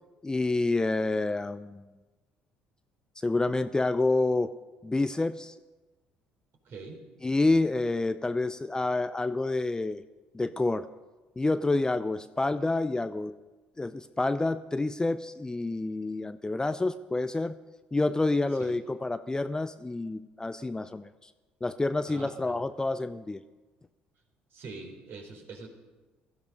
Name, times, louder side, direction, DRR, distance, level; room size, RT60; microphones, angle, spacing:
voice 1, 0.2-1.8 3.2-4.5 4.8-5.5 7.2-10.0 10.3-10.9 11.4-13.3 13.8-17.6 17.9-21.1 21.6-23.4, left 2 dB, 15° left, 13 dB, 0.6 m, -28 dB
voice 2, 6.6-7.0 18.5-18.8 22.1-22.6 24.5-25.7, right 3 dB, 55° right, 2 dB, 3.9 m, -44 dB
17.5 x 14.0 x 5.3 m, 1.2 s
hypercardioid pair, 55°, 5 cm